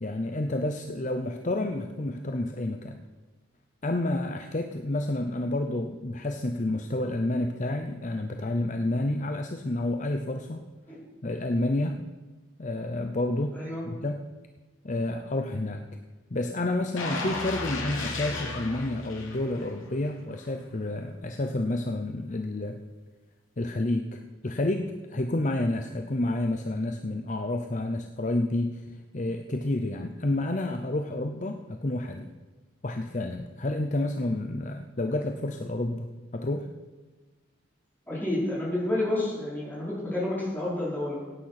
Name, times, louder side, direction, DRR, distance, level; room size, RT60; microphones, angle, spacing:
voice 1, 0.0-3.0 3.8-10.6 11.2-12.0 12.6-13.6 13.9-14.2 14.8-15.8 16.3-22.8 23.6-32.3 32.8-36.1 36.3-36.7, left 1 dB, 35° left, 6 dB, 0.7 m, -29 dB
voice 2, 13.5-13.8 38.1-41.2, left 1 dB, 10° left, -7 dB, 5.1 m, -29 dB
sound 1, 17.0-19.9 20.3-20.5, left 3 dB, 75° left, 2.8 m, -34 dB
16.5 x 9.1 x 5.8 m, 1.3 s
head